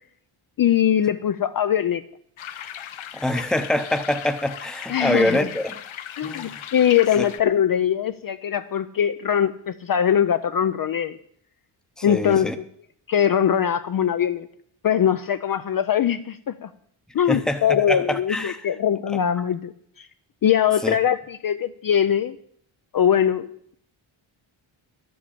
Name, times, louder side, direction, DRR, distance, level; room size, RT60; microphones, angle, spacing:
voice 1, 0.6-2.0 4.9-5.5 6.2-11.2 12.0-12.5 13.1-14.5 14.8-16.7 17.1-20.1 20.4-22.4 22.9-23.8, left 9 dB, 45° left, 0.5 m, -22 dB
sound 1, 2.4-7.4, left 10 dB, 70° left, 0.9 m, -37 dB
voice 2, 3.1-5.8 6.2-6.6 7.2-7.3 12.0-12.6 17.3-17.6 17.9-18.6 20.8-21.0, left 1 dB, ahead, 0.8 m, -25 dB
12.0 x 7.7 x 8.5 m
wide cardioid pair, 160°, 49 cm